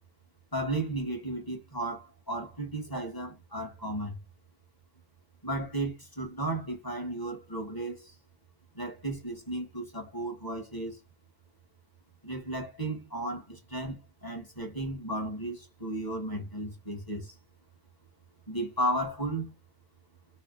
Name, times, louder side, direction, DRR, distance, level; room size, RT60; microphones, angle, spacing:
voice 1, 0.5-4.2 5.4-8.2 8.7-11.0 12.2-17.4 18.5-19.5, right 1 dB, 20° left, 1.1 m, -34 dB
3.3 x 2.4 x 3.7 m
omnidirectional pair, 1.2 m